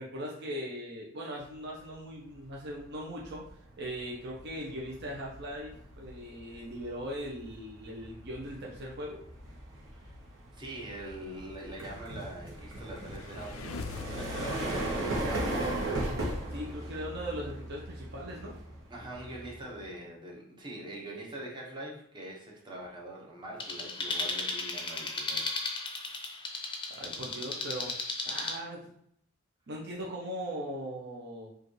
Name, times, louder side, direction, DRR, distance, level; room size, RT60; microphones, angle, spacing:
voice 1, 0.0-3.4 3.8-9.2 16.5-18.6 26.9-28.0 28.2-28.8 29.7-31.5, equal, 55° right, -3 dB, 0.7 m, -39 dB
sound 1, 2.5-2.8 3.2-19.9, right 1 dB, 70° right, 1.1 m, -38 dB
voice 2, 10.5-16.2 16.5-16.9 18.9-26.3, right 1 dB, 25° right, -2 dB, 0.9 m, -44 dB
sound 2, 12.7-16.3, left 6 dB, 80° left, 0.3 m, -44 dB
sound 3, 23.6-28.6, left 3 dB, 25° left, 0.6 m, -35 dB
4.8 x 2.5 x 3.1 m, 0.67 s
head